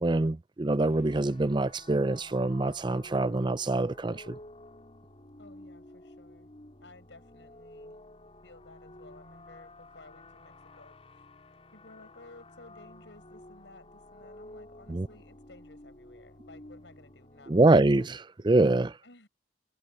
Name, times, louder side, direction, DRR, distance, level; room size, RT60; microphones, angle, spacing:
voice 1, 0.0-4.4 14.9-15.1 17.5-18.2 18.4-18.9, right 2 dB, 25° right, 0.5 m, -25 dB
sound 1, 0.8-18.1, left 1 dB, 35° left, 4.5 m, -51 dB
voice 2, 5.4-6.5 6.8-8.0 8.4-11.3 11.7-17.9 19.0-19.3, left 2 dB, 85° left, 5.3 m, -55 dB
head